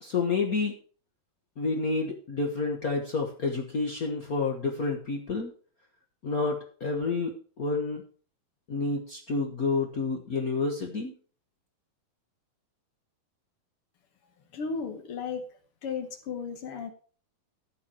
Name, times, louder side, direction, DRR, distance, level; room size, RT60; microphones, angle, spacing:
voice 1, 0.0-0.7 1.6-5.5 6.2-7.3 7.6-8.0 8.7-11.1, left 3 dB, 85° left, 0 dB, 0.7 m, -29 dB
voice 2, 14.5-15.4 15.8-16.9, left 5 dB, 55° left, 8 dB, 1.8 m, -34 dB
13.0 x 5.8 x 6.3 m, 0.41 s
omnidirectional pair, 3.8 m